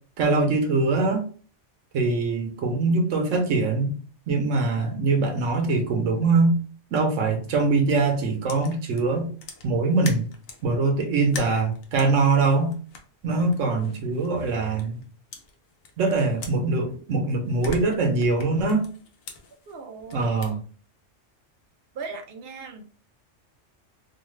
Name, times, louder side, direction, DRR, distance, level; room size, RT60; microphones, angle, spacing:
voice 1, 0.2-1.2 1.9-3.9 4.3-6.6 6.9-9.3 9.6-10.3 10.6-12.7 13.2-15.0 16.0-18.9 20.1-20.6, right 3 dB, 80° right, 4 dB, 1.1 m, -23 dB
sound 1, 8.5-10.7 11.2-15.0 15.3-17.2 17.4-20.5, left 3 dB, 60° left, 0.8 m, -42 dB
voice 2, 19.7-20.3 21.9-23.1, right 4 dB, 60° right, 4 dB, 0.7 m, -38 dB
3.0 x 2.2 x 3.1 m, 0.40 s
omnidirectional pair, 1.3 m